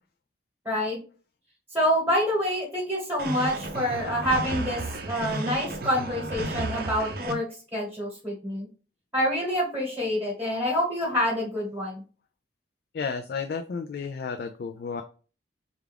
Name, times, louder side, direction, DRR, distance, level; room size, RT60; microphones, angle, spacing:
voice 1, 0.6-1.0 1.7-4.8 5.1-7.5 7.7-8.7 9.1-12.0, equal, 10° right, -4 dB, 1.2 m, -27 dB
sound 1, 3.2-7.3, right 2 dB, 50° right, 0.5 m, -33 dB
voice 2, 12.9-15.0, left 5 dB, 55° left, 5 dB, 0.3 m, -32 dB
3.4 x 2.4 x 3.3 m, 0.37 s
head